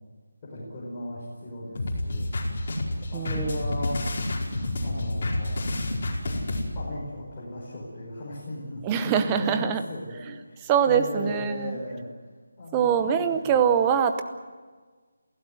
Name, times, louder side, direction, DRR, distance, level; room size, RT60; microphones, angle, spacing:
voice 1, 0.5-2.3 3.1-4.1 4.8-5.6 6.7-12.0 12.6-13.5, left 1 dB, 20° left, -7 dB, 5.0 m, -37 dB
sound 1, 1.8-6.6, left 2 dB, 35° left, 5.1 m, -29 dB
voice 2, 3.1-3.6 8.8-9.8 10.3-10.4 10.6-11.8 12.7-14.2, right 7 dB, 10° right, 9 dB, 0.8 m, -23 dB
27.5 x 16.5 x 7.9 m, 1.5 s
figure-of-eight pair, 175°, 0 cm